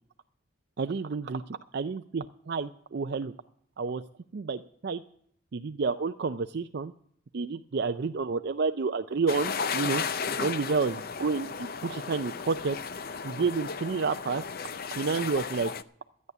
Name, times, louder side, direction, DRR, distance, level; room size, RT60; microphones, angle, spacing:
voice 1, 0.8-1.4 1.7-3.3 3.8-4.0 4.3-5.0 5.5-6.9 7.3-10.0 10.4-12.8 13.2-14.4 15.0-15.7, right 4 dB, 50° right, 8 dB, 0.4 m, -30 dB
sound 1, 9.3-15.8, left 6 dB, 45° left, 0.5 m, -34 dB
13.5 x 9.5 x 6.7 m, 0.68 s
head